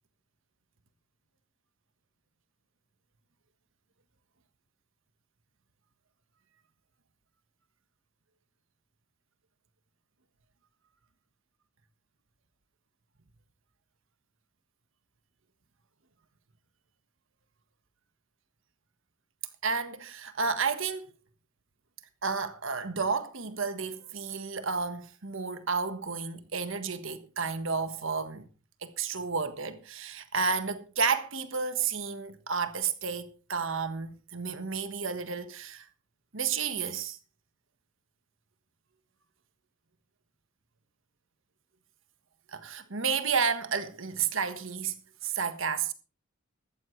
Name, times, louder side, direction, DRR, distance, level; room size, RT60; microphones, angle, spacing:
voice 1, 19.6-21.1 22.2-28.5 28.8-35.9 36.3-37.2 42.5-45.9, right 5 dB, 65° right, 1.4 m, -31 dB
14.0 x 14.0 x 3.3 m
head